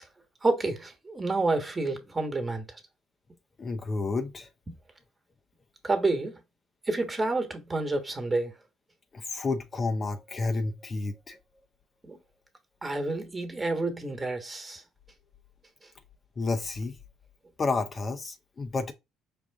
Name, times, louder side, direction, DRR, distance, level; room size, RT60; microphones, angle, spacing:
voice 1, 0.4-2.6 5.8-6.4 6.9-8.5 12.0-12.2 12.8-14.8, right 2 dB, 25° right, 1.3 m, -29 dB
voice 2, 3.6-4.5 9.1-11.4 16.4-17.0 17.6-18.9, left 3 dB, 35° left, 0.6 m, -30 dB
5.0 x 2.4 x 3.4 m
supercardioid pair, 70°, 0 cm